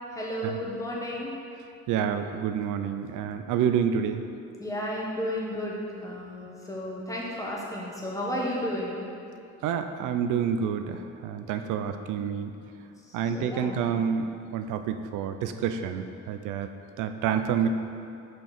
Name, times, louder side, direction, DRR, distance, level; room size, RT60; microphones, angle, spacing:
voice 1, 0.1-1.3 4.6-5.8 6.0-9.0 13.0-13.8, equal, 10° left, -4 dB, 1.4 m, -33 dB
voice 2, 1.9-4.2 9.6-12.5 13.1-16.7 17.0-17.7, right 8 dB, 90° right, 8 dB, 0.5 m, -28 dB
6.2 x 4.5 x 5.0 m, 2.5 s
cardioid pair, 90°, 30 cm